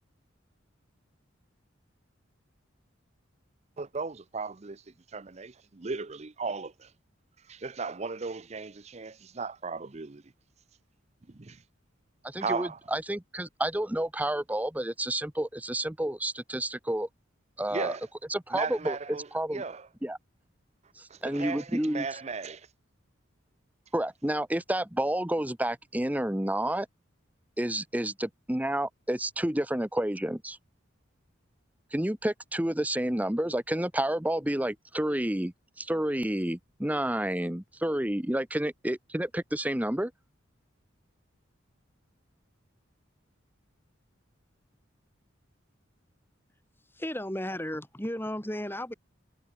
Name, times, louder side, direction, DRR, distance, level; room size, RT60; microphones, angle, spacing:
voice 1, 3.8-4.8 5.1-6.9 7.5-10.2 11.3-11.6 12.4-12.8 17.7-18.1 18.5-19.3 19.5-19.9 21.1-22.7, right 4 dB, 35° right, 0.7 m, -36 dB
voice 2, 12.2-17.1 17.6-17.9 18.3-19.0 19.3-19.6 20.0-20.2 21.0-22.1 23.9-26.9 27.6-30.6 31.9-40.1, right 1 dB, 10° right, 0.9 m, -30 dB
voice 3, 46.9-48.9, left 1 dB, 10° left, 4.0 m, -34 dB
head